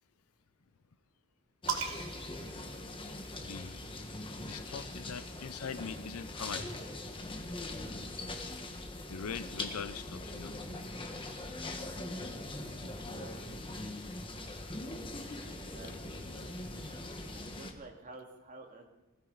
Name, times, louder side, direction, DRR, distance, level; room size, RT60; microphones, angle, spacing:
sound 1, 1.6-17.7, left 2 dB, 25° left, 1.3 m, -42 dB
sound 2, 1.7-3.5 4.6-6.2, right 6 dB, 70° right, 1.5 m, -41 dB
voice 1, 3.5-3.8 4.4-6.7 9.1-10.6 16.4-16.6, left 6 dB, 90° left, 15 dB, 0.6 m, -42 dB
voice 2, 12.9-13.6 15.5-16.3 17.3-18.9, right 2 dB, 40° right, 1 dB, 2.3 m, -51 dB
21.0 x 14.0 x 4.0 m, 0.97 s
head